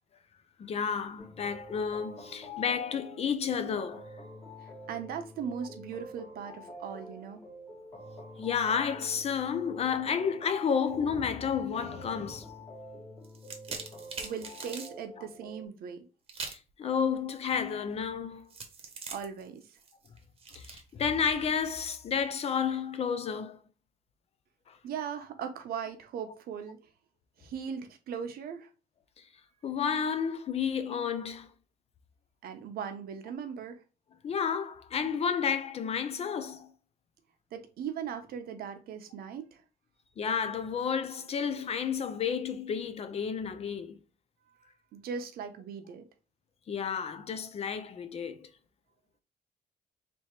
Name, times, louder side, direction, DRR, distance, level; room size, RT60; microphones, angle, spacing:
voice 1, 0.6-4.1 8.4-12.5 15.2-15.3 16.4-18.5 20.5-23.6 24.7-24.8 29.6-31.5 34.2-36.7 40.2-44.0 46.7-48.5, left 7 dB, 40° left, 0.5 m, -31 dB
sound 1, 1.2-15.7, left 1 dB, 20° left, 1.2 m, -47 dB
voice 2, 4.6-7.4 14.2-16.0 19.1-19.8 24.8-26.8 27.4-28.7 32.4-33.8 37.5-39.6 44.9-46.1, right 7 dB, 80° right, 0.8 m, -39 dB
sound 2, 13.2-14.9 16.3-16.7 18.5-21.6, right 4 dB, 40° right, 0.9 m, -43 dB
3.5 x 2.8 x 4.3 m
cardioid pair, 140°, 15 cm